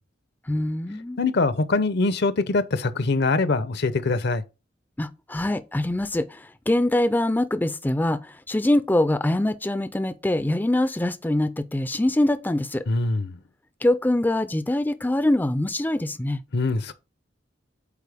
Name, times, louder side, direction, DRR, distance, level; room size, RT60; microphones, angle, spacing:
voice 1, 0.5-1.2 5.0-12.8 13.8-16.4, left 1 dB, 10° left, 0.4 m, -24 dB
voice 2, 1.2-4.4 12.9-13.4 16.5-16.9, left 3 dB, 60° left, 0.7 m, -23 dB
8.3 x 4.4 x 3.4 m
head